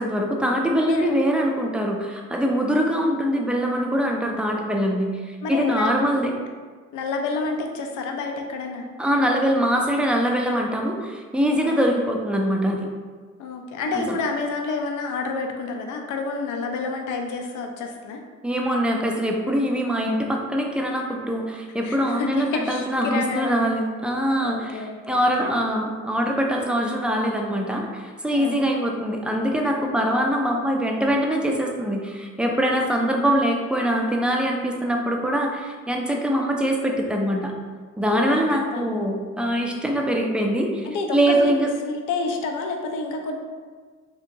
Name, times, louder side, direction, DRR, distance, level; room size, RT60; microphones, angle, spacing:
voice 1, 0.0-6.3 9.0-12.9 13.9-14.2 18.4-37.5 38.0-40.9 41.1-41.7, equal, 5° right, 0 dB, 0.3 m, -23 dB
voice 2, 5.4-5.9 6.9-8.9 11.6-11.8 13.4-18.2 21.8-23.5 24.4-25.5 28.3-28.7 33.0-33.1 38.2-39.0 40.8-41.5 41.9-43.3, left 4 dB, 80° left, 3 dB, 0.5 m, -29 dB
2.8 x 2.6 x 2.5 m, 1.5 s
cardioid pair, 90°, 30 cm